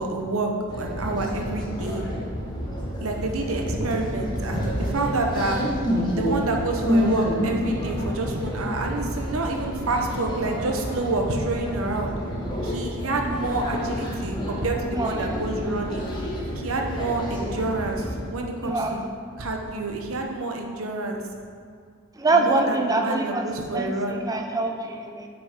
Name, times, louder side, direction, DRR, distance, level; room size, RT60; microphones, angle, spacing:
voice 1, 0.0-2.0 3.0-5.6 6.1-12.1 12.6-16.1 16.5-19.0 19.4-21.2 22.3-24.2, right 2 dB, 70° right, 2 dB, 0.9 m, -28 dB
sound 1, 0.7-18.2, equal, 20° left, 1.3 m, -29 dB
voice 2, 14.9-15.3 18.6-19.0 22.2-23.5 23.7-25.3, right 2 dB, 15° right, 3 dB, 0.6 m, -25 dB
8.9 x 6.1 x 3.7 m, 2.2 s
head